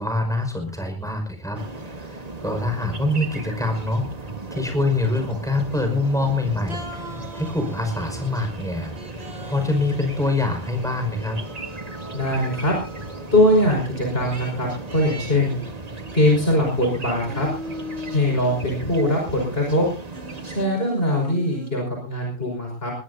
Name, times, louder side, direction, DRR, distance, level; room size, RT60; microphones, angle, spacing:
voice 1, 0.0-11.4, left 2 dB, 5° left, 4 dB, 5.4 m, -25 dB
sound 1, 1.6-20.7, right 2 dB, 35° right, 1.6 m, -37 dB
sound 2, 2.3-17.5, right 1 dB, 15° right, 5.1 m, -43 dB
sound 3, 6.0-6.4 6.7-8.4 9.0-10.9 11.4-13.3 14.3-16.9 17.3-18.8 19.3-19.4 20.1-21.7, equal, 65° right, 3.0 m, -40 dB
voice 2, 12.1-12.7 13.3-15.6 16.1-17.5 18.1-19.8 20.4-22.9, left 1 dB, 60° left, 0 dB, 5.6 m, -21 dB
21.0 x 20.0 x 2.7 m, 0.35 s
omnidirectional pair, 1.1 m